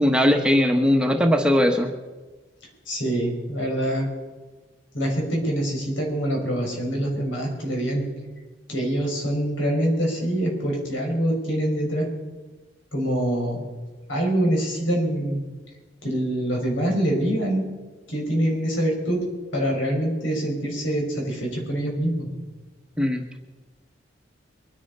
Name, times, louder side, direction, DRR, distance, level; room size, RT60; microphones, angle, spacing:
voice 1, 0.0-1.9 23.0-23.2, left 1 dB, 5° right, 4 dB, 1.0 m, -19 dB
voice 2, 2.9-4.1 4.9-8.1 8.7-12.1 12.9-13.6 14.1-15.4 16.0-17.7 18.1-19.2 19.5-22.3, right 1 dB, 85° left, 0 dB, 5.7 m, -25 dB
23.5 x 10.0 x 5.5 m, 1.2 s
head